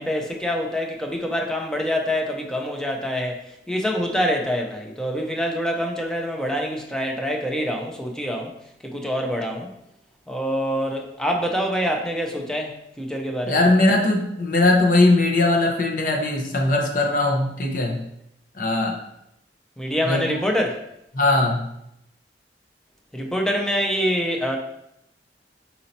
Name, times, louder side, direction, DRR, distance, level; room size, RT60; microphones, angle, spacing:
voice 1, 0.0-3.4 3.7-8.5 8.9-9.7 10.3-13.6 19.8-20.8 23.1-24.6, equal, 5° left, 1 dB, 0.5 m, -25 dB
voice 2, 13.5-18.0 18.5-19.0 20.0-20.4 21.1-21.6, left 2 dB, 50° left, 1 dB, 0.7 m, -20 dB
4.2 x 2.8 x 4.0 m, 0.79 s
head